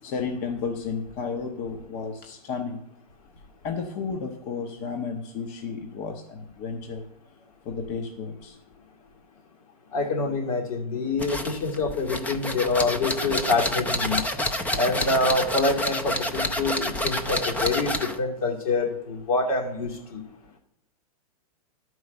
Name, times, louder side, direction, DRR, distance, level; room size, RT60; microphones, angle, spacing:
voice 1, 0.0-2.8 3.6-7.0 7.6-8.6, left 5 dB, 40° left, 4 dB, 0.9 m, -32 dB
voice 2, 9.9-14.2 14.8-20.2, left 3 dB, 70° left, 0 dB, 2.3 m, -26 dB
sound 1, 11.2-18.2, left 1 dB, 10° left, 0.5 m, -28 dB
11.5 x 4.7 x 6.6 m, 0.84 s
hypercardioid pair, 140°, 19 cm